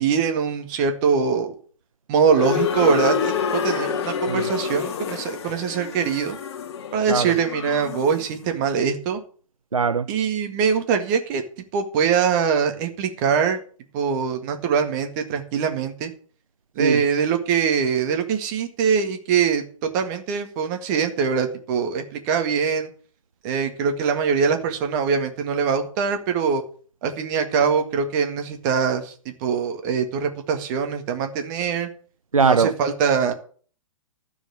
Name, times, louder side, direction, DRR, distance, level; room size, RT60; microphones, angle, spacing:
voice 1, 0.0-1.5 2.1-6.4 6.9-9.2 10.1-11.4 11.7-13.6 13.9-16.1 16.8-19.6 19.9-22.9 23.4-26.6 27.0-29.1 29.4-31.9 32.4-33.3, right 6 dB, 35° right, 1.9 m, -23 dB
sound 1, 2.3-8.2, left 7 dB, 50° left, 1.2 m, -27 dB
voice 2, 9.7-10.1 16.8-17.0 32.3-32.7, right 5 dB, 80° right, 0.5 m, -20 dB
13.0 x 4.9 x 8.5 m
figure-of-eight pair, 115°, 17 cm